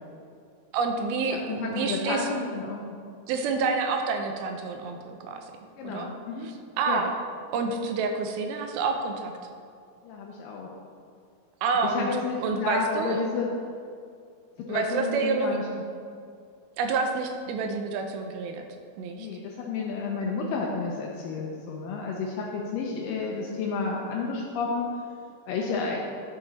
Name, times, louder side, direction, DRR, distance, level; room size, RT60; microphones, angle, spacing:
voice 1, 0.7-2.2 3.3-5.5 5.8-6.1 6.4-7.1 7.5-9.3 11.6-12.1 12.4-13.2 14.7-15.6 16.8-18.6 19.0-19.3, right 4 dB, 85° right, 4 dB, 2.6 m, -28 dB
voice 2, 1.3-3.0 5.8-6.5 6.9-7.0 10.0-10.7 11.8-13.5 14.6-15.6 19.1-24.9 25.5-26.0, left 4 dB, 75° left, -2 dB, 2.3 m, -31 dB
11.0 x 6.3 x 4.0 m, 2.3 s
omnidirectional pair, 4.3 m